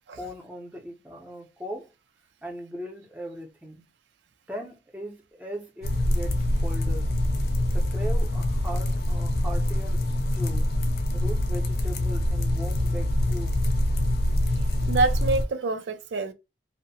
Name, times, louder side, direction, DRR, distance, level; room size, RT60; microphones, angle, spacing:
voice 1, 0.1-1.9 2.4-3.9 4.5-7.2 7.7-10.7 11.1-13.5, equal, 10° right, 0.6 m, -39 dB
sound 1, 5.8-15.4, left 1 dB, 60° left, 0.5 m, -25 dB
voice 2, 14.9-16.3, right 3 dB, 85° right, 0.4 m, -26 dB
2.7 x 2.1 x 2.6 m
head